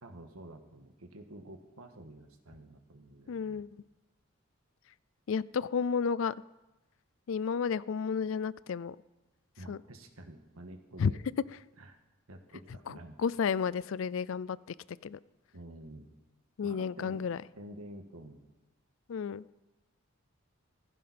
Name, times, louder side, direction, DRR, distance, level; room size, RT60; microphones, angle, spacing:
voice 1, 0.0-3.6 9.6-11.2 11.8-12.0 12.3-13.2 15.5-16.1 16.6-18.4, right 1 dB, 75° right, 5 dB, 1.6 m, -49 dB
voice 2, 3.3-3.7 5.3-6.3 7.3-9.0 9.7-9.8 11.0-11.1 12.9-14.6 15.0-15.2 16.6-17.4 19.1-19.5, left 6 dB, 60° left, 20 dB, 0.4 m, -32 dB
15.5 x 15.5 x 4.3 m, 1.1 s
head